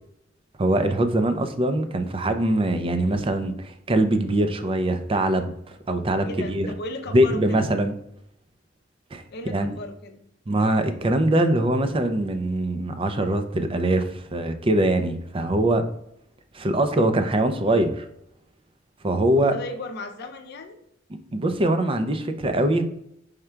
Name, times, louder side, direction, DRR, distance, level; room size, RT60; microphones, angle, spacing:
voice 1, 0.6-5.5 5.9-6.7 7.1-7.9 9.1-9.2 9.5-9.7 10.5-15.8 16.5-18.0 19.0-19.5 21.3-22.8, right 1 dB, 30° right, 8 dB, 0.5 m, -22 dB
voice 2, 6.2-7.7 9.3-10.2 19.4-20.8, left 2 dB, 55° left, 6 dB, 0.6 m, -36 dB
5.0 x 2.3 x 4.4 m, 0.75 s
head